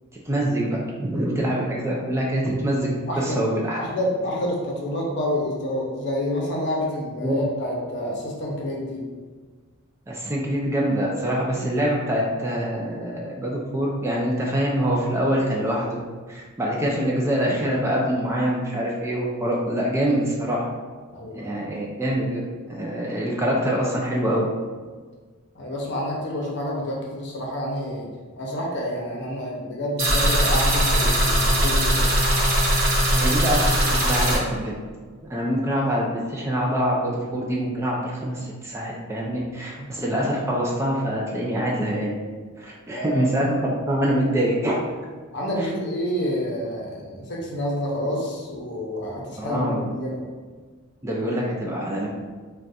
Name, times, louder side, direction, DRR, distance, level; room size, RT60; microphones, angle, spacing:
voice 1, 0.2-3.8 7.2-7.3 10.1-16.0 16.3-20.6 21.3-22.4 22.7-24.5 33.1-34.7 35.3-42.1 42.6-43.6 43.9-44.8 45.6-45.7 49.4-49.9 51.0-52.1, equal, 15° right, -3 dB, 0.3 m, -25 dB
voice 2, 3.1-3.5 3.8-9.0 21.1-21.6 25.5-28.1 28.4-32.1 42.9-43.2 45.3-50.2, left 1 dB, 55° left, -2 dB, 0.7 m, -28 dB
sound 1, 30.0-34.4, right 1 dB, 45° right, 0.7 m, -20 dB
2.5 x 2.2 x 4.0 m, 1.5 s
head